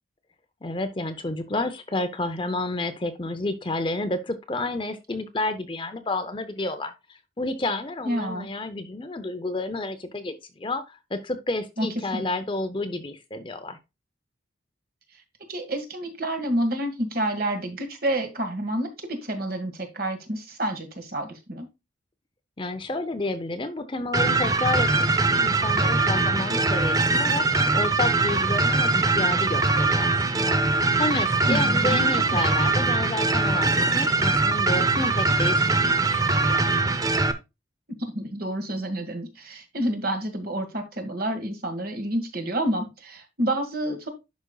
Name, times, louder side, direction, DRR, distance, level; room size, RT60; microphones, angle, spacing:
voice 1, 0.6-13.8 22.6-27.5 27.7-36.6, left 2 dB, 25° left, 0.6 m, -30 dB
voice 2, 8.0-8.5 11.8-11.9 12.1-12.2 15.5-21.7 31.5-32.4 38.0-44.1, right 1 dB, 50° right, 1.7 m, -29 dB
sound 1, 24.1-37.3, right 3 dB, 20° right, 0.5 m, -22 dB
11.0 x 5.2 x 2.3 m
head